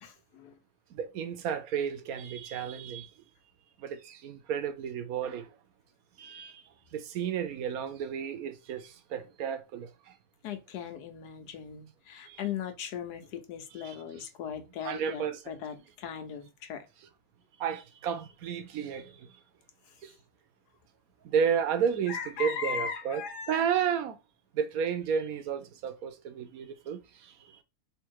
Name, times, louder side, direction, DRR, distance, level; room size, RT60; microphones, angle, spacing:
voice 1, 0.0-0.6 10.4-16.9 22.1-23.7, left 7 dB, 85° left, 1.3 m, -38 dB
voice 2, 0.9-3.1 3.8-5.5 6.2-6.6 6.9-9.9 12.3-12.4 13.8-14.0 14.8-15.4 17.6-19.3 20.0-20.1 21.2-24.2 24.5-27.3, right 7 dB, 70° right, 1.1 m, -32 dB
3.5 x 2.7 x 4.6 m
omnidirectional pair, 1.7 m